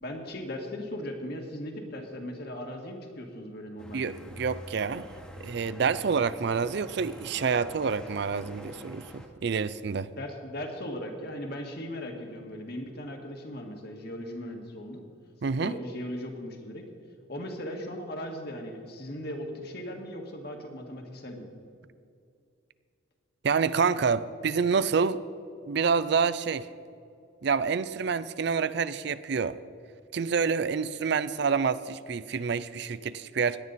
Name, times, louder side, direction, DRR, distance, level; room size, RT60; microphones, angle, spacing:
voice 1, 0.0-4.1 10.2-15.0 15.6-16.9 17.3-21.5, left 1 dB, 50° left, 3 dB, 1.7 m, -38 dB
sound 1, 3.8-9.3, equal, 5° left, 1.1 m, -46 dB
voice 2, 3.9-5.1 5.4-10.1 15.4-15.8 23.4-25.2 25.7-26.7 27.4-29.6 30.1-33.6, right 5 dB, 55° right, 15 dB, 0.4 m, -27 dB
17.0 x 11.0 x 4.1 m, 2.4 s
head